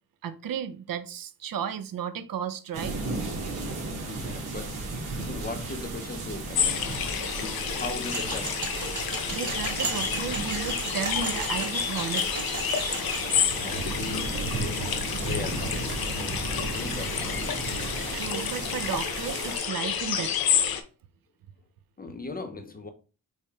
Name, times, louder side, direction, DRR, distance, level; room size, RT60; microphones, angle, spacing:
voice 1, 0.2-3.0 9.0-12.5 18.1-20.4, right 8 dB, 65° right, 0.6 m, -34 dB
sound 1, 2.7-19.6, right 3 dB, 85° right, 1.7 m, -35 dB
voice 2, 4.1-4.8 5.2-7.1 7.4-8.6 13.3-17.6 22.0-22.9, left 3 dB, 25° left, 0.4 m, -39 dB
sound 2, 6.5-20.8, left 7 dB, 75° left, 0.7 m, -30 dB
sound 3, 8.1-13.4, right 3 dB, 50° right, 1.4 m, -35 dB
4.9 x 4.0 x 2.3 m
wide cardioid pair, 165°, 37 cm